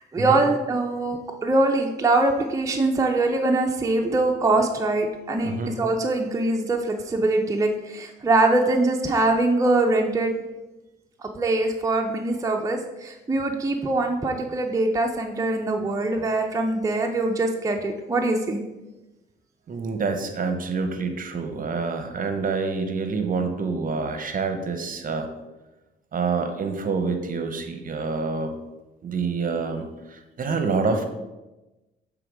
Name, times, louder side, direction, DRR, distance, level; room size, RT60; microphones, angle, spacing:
voice 1, 0.1-10.3 11.2-18.6, right 2 dB, 15° right, 2 dB, 0.6 m, -23 dB
voice 2, 5.4-5.8 19.7-25.3 26.1-28.5 29.0-31.1, right 4 dB, 45° right, 6 dB, 0.8 m, -27 dB
6.8 x 3.6 x 4.7 m, 1.0 s
cardioid pair, 90°, 20 cm